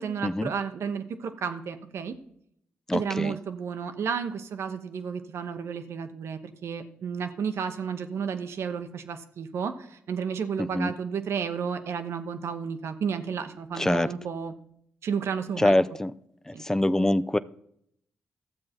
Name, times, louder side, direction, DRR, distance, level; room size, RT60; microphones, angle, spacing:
voice 1, 0.0-2.2 2.9-14.5 15.0-15.8 16.5-16.6, right 6 dB, 70° right, 8 dB, 1.0 m, -32 dB
voice 2, 2.9-3.3 10.6-10.9 13.8-14.1 15.6-16.1 16.5-17.4, left 1 dB, 10° left, 15 dB, 0.5 m, -24 dB
12.5 x 7.5 x 4.4 m, 0.71 s
supercardioid pair, 55°, 5 cm